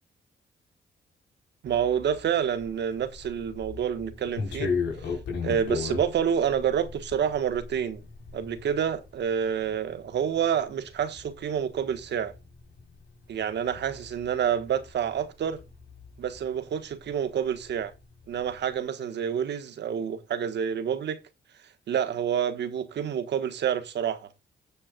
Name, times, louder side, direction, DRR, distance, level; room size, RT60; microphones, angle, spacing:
voice 1, 1.6-4.7 5.0-5.1 5.4-8.0 8.3-12.3 13.3-15.6 16.2-17.9 18.3-21.2 21.9-24.3, right 8 dB, 75° right, 1.5 m, -28 dB
sound 1, 1.7-17.2 17.5-18.7, left 5 dB, 85° left, 4.4 m, -37 dB
17.5 x 7.3 x 2.4 m
cardioid pair, 65°, 18 cm